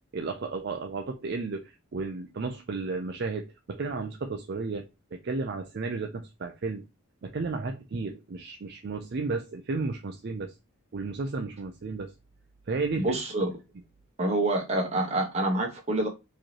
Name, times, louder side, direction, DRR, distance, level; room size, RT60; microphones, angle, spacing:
voice 1, 0.1-6.8 7.2-10.5 10.9-12.1 12.7-13.2, right 3 dB, 50° right, 0.4 m, -33 dB
voice 2, 13.0-13.5 14.2-16.1, right 2 dB, 30° right, 1.2 m, -27 dB
4.6 x 3.1 x 2.9 m
head